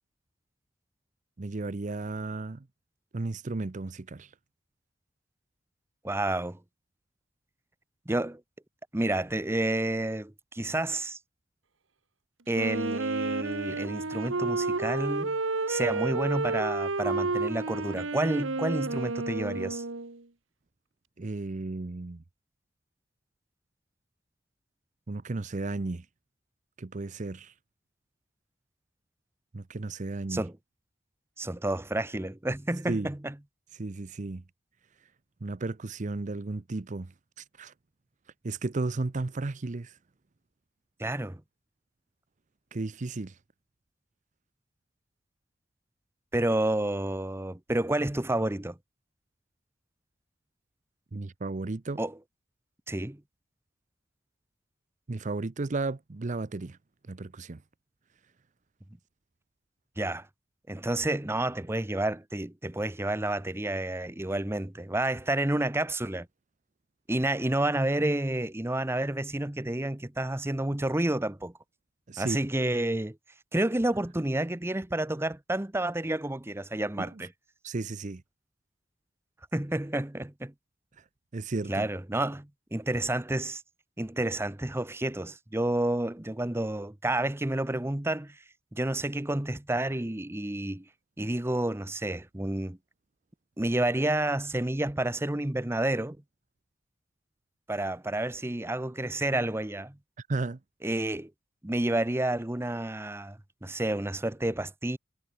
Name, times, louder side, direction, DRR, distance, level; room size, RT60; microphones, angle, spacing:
voice 1, 1.4-2.6 3.1-4.3 21.2-22.2 25.1-26.0 26.8-27.5 29.5-30.4 32.9-33.1 33.7-34.4 35.4-37.1 37.4-37.7 38.4-40.0 42.7-43.3 51.1-52.0 55.1-56.8 57.1-57.6 72.1-72.4 77.0-77.1 77.6-78.2 81.3-81.9 100.3-100.6, right 3 dB, 40° right, 0.6 m, -34 dB
voice 2, 6.0-6.6 8.1-8.4 8.9-11.2 12.5-15.4 15.7-19.8 30.3-30.5 31.4-33.3 41.0-41.4 46.3-48.8 52.0-52.1 52.9-53.2 60.0-60.3 60.7-66.3 67.1-71.5 72.2-73.2 73.5-77.3 79.5-80.5 81.7-83.6 84.0-88.4 88.7-90.8 91.2-92.8 93.6-96.2 97.7-100.0 100.8-101.3 101.6-105.0, right 1 dB, 15° right, 0.8 m, -30 dB
Wind instrument woodwind instrument, 12.5-20.2, right 3 dB, 85° right, 1.6 m, -31 dB
head